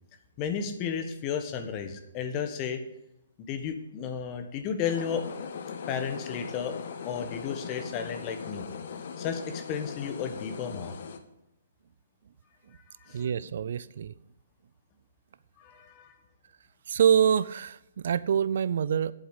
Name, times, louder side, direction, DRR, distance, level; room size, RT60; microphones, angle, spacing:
voice 1, 0.4-2.8 3.4-5.2 5.9-6.7 7.0-8.7 9.2-10.9 12.7-13.3 15.6-16.2, left 7 dB, 30° left, 7 dB, 1.3 m, -33 dB
sound 1, 4.9-11.2, left 6 dB, 60° left, 1.2 m, -39 dB
voice 2, 13.1-14.1 16.9-19.1, right 8 dB, 60° right, 17 dB, 0.4 m, -25 dB
8.6 x 7.9 x 8.2 m, 0.85 s
hypercardioid pair, 135°, 0 cm